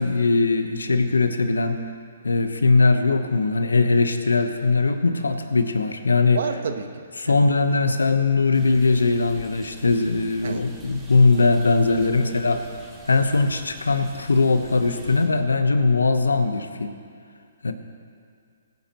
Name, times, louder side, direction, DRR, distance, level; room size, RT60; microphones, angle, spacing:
voice 1, 0.0-1.8 2.2-6.4 7.2-12.7 13.1-16.9 17.6-17.7, left 3 dB, 90° left, 8 dB, 1.0 m, -20 dB
voice 2, 6.3-7.4 10.4-10.6 12.0-12.6, right 6 dB, 65° right, 8 dB, 1.0 m, -32 dB
sound 1, 8.5-15.3, right 2 dB, 10° right, 2.3 m, -46 dB
20.5 x 9.5 x 3.0 m, 2.2 s
hypercardioid pair, 135°, 0 cm